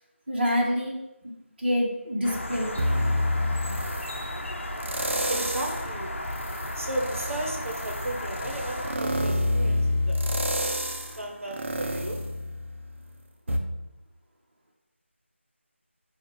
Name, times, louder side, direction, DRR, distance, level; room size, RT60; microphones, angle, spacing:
voice 1, 0.3-1.0 1.2-1.3 1.6-2.8 3.4-3.8, equal, 50° right, -3 dB, 1.0 m, -27 dB
sound 1, 2.2-9.0, left 1 dB, 70° left, 0.7 m, -34 dB
sound 2, 2.8-4.2 4.8-5.9 6.3-13.0 13.5-13.6, left 1 dB, 65° right, 0.6 m, -28 dB
voice 2, 5.3-6.4 6.7-12.3, right 1 dB, 85° right, 1 dB, 0.9 m, -35 dB
6.5 x 2.4 x 3.3 m, 0.93 s
figure-of-eight pair, 170°, 7 cm